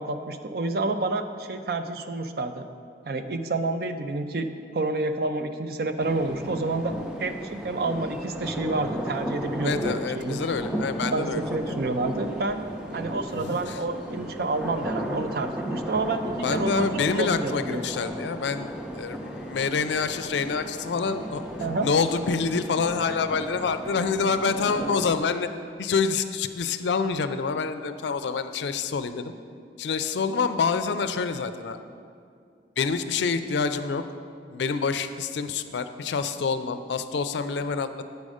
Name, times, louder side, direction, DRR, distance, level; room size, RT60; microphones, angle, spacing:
voice 1, 0.0-2.7 3.1-6.9 7.2-10.4 11.1-12.6 12.9-17.9 21.6-21.9 23.1-23.2, right 2 dB, 60° right, 8 dB, 0.5 m, -29 dB
sound 1, 6.0-25.2, right 1 dB, 5° right, 0.5 m, -35 dB
voice 2, 9.6-11.8 12.9-13.8 16.4-21.5 21.8-25.5 25.8-29.3 29.8-31.8 32.8-34.0 34.5-38.0, left 5 dB, 80° left, 10 dB, 0.4 m, -27 dB
8.2 x 5.3 x 4.9 m, 2.3 s
head